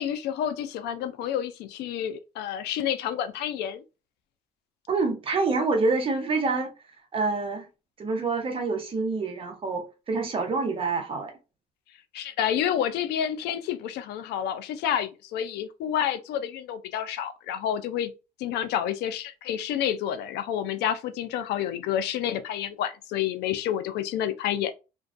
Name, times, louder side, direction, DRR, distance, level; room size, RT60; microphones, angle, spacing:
voice 1, 0.0-3.8 12.1-18.1 18.4-24.7, left 10 dB, 80° left, 0.4 m, -29 dB
voice 2, 4.9-6.7 7.1-7.6 8.0-11.3, right 3 dB, 30° right, 0.7 m, -27 dB
2.4 x 2.2 x 2.4 m
cardioid pair, 110°, 17 cm